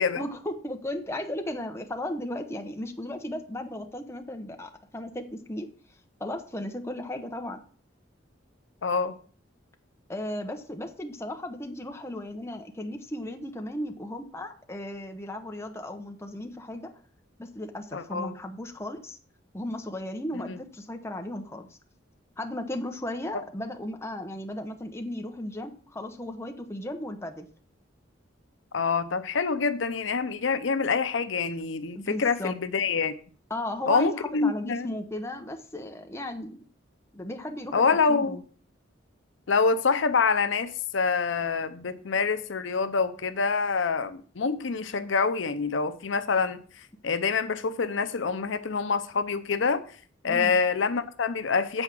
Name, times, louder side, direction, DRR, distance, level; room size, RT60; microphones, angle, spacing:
voice 1, 0.0-5.7 6.2-7.6 10.1-16.9 17.4-19.2 19.5-21.8 22.4-27.5 31.9-32.5 33.5-36.6 37.1-38.4 50.3-50.5, left 1 dB, 15° left, 0.9 m, -35 dB
voice 2, 8.8-9.1 17.9-18.3 20.3-20.6 28.7-33.1 33.9-34.9 37.7-38.4 39.5-46.6 47.0-49.8 50.2-51.8, left 5 dB, 80° left, 0.7 m, -26 dB
8.0 x 4.8 x 7.3 m
head